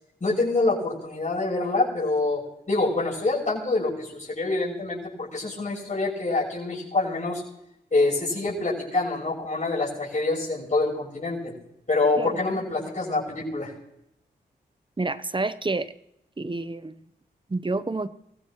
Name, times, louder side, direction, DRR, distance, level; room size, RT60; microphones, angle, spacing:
voice 1, 0.2-2.4 2.7-7.4 7.9-11.5 11.9-13.7, left 2 dB, 40° left, -4 dB, 6.8 m, -26 dB
voice 2, 15.0-15.9 16.4-17.0 17.5-18.1, right 3 dB, 25° right, 14 dB, 0.9 m, -28 dB
24.0 x 16.0 x 3.2 m, 0.79 s
supercardioid pair, 40°, 18 cm